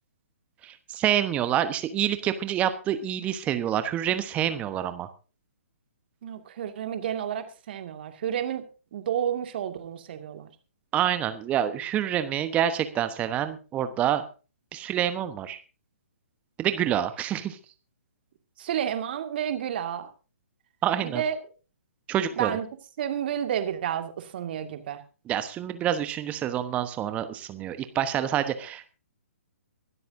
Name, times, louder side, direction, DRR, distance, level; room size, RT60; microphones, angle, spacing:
voice 1, 0.6-5.1 10.9-14.2 14.7-15.6 16.6-17.6 20.8-21.2 22.1-22.6 25.3-29.0, right 10 dB, 15° right, 11 dB, 1.1 m, -27 dB
voice 2, 6.2-8.6 8.9-10.5 18.6-20.1 21.0-21.4 22.4-22.7 23.0-25.0, right 9 dB, 45° right, 7 dB, 2.1 m, -30 dB
23.5 x 12.5 x 2.7 m, 0.35 s
figure-of-eight pair, 130°, 8 cm